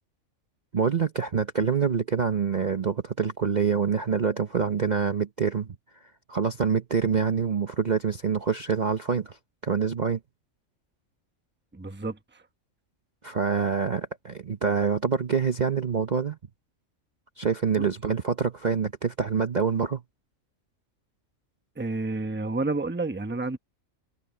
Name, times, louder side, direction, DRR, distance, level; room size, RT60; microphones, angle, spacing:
voice 1, 0.7-5.7 6.0-9.4 9.6-10.2 13.2-16.4 17.4-20.0, right 6 dB, 40° right, 0.8 m, -26 dB
voice 2, 11.7-12.2 17.8-17.9 21.8-23.6, right 3 dB, 10° right, 0.9 m, -30 dB
omnidirectional pair, 1.4 m